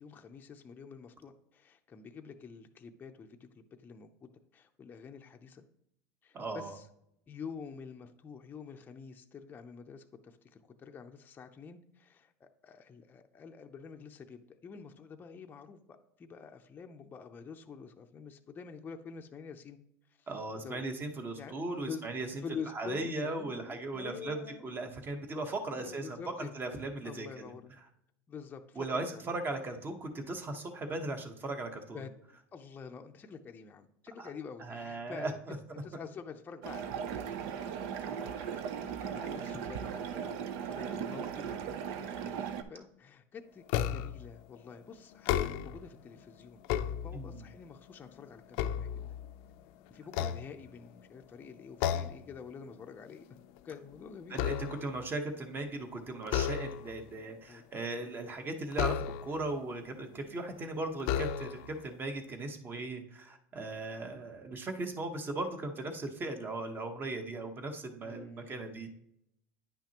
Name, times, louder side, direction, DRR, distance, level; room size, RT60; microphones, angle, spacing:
voice 1, 0.0-5.6 6.2-6.9 7.3-19.8 20.2-20.3 20.6-20.8 21.4-22.1 22.4-24.6 25.7-26.5 27.0-27.7 28.3-29.2 31.9-32.1 32.5-35.4 35.8-37.4 37.9-40.4 40.7-46.6 47.0-48.9 49.9-53.3 53.6-54.6 57.5-57.6 68.0-68.9, left 6 dB, 25° left, 4 dB, 0.6 m, -47 dB
voice 2, 6.3-6.8 20.3-22.3 22.7-27.5 28.8-32.0 34.2-34.3 34.6-35.6 47.1-47.4 54.3-68.9, right 2 dB, 25° right, 6 dB, 1.1 m, -38 dB
sound 1, 36.6-42.6, right 8 dB, 70° right, 0.7 m, -38 dB
sound 2, 43.7-44.3 45.1-45.9 46.4-47.5 48.0-49.5 50.1-51.0 51.8-52.3 52.7-52.9 53.3-55.0 56.2-57.0 58.7-59.5 60.3-60.4 61.0-61.8, left 10 dB, 65° left, 0.5 m, -34 dB
9.8 x 5.8 x 2.9 m, 0.76 s
supercardioid pair, 120°, 8 cm